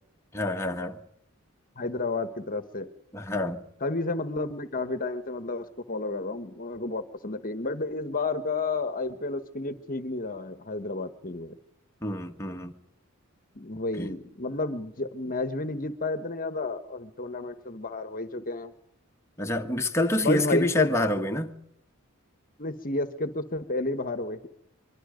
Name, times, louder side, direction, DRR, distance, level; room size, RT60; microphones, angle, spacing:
voice 1, 0.3-1.0 3.1-3.6 12.0-12.7 14.0-14.1 19.4-21.6, left 1 dB, 15° left, 1.6 m, -27 dB
voice 2, 1.8-2.9 3.8-11.6 13.5-18.7 20.2-20.9 22.6-24.5, left 2 dB, 40° left, 1.4 m, -31 dB
24.0 x 24.0 x 5.2 m
head